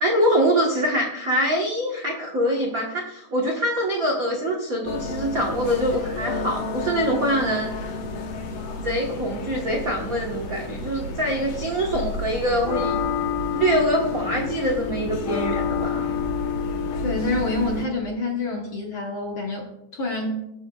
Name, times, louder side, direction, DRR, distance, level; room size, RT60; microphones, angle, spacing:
voice 1, 0.0-7.7 8.8-13.0 13.5-16.1, equal, 75° right, -2 dB, 0.8 m, -24 dB
sound 1, 4.9-17.9, left 4 dB, 80° left, 2.7 m, -29 dB
voice 2, 17.0-20.5, left 2 dB, 60° left, -1 dB, 1.4 m, -27 dB
20.5 x 6.8 x 2.3 m, 0.86 s
omnidirectional pair, 3.7 m